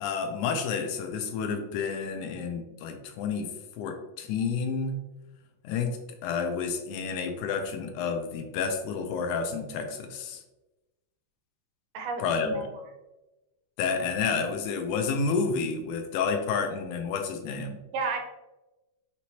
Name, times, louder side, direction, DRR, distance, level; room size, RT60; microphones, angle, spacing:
voice 1, 0.0-3.5 3.8-5.0 5.6-10.4 12.2-12.6 13.8-17.8, left 5 dB, 80° left, 5 dB, 2.0 m, -30 dB
voice 2, 11.9-12.7 17.9-18.2, right 4 dB, 85° right, 3 dB, 2.1 m, -32 dB
6.0 x 3.0 x 2.8 m, 1.0 s
omnidirectional pair, 3.7 m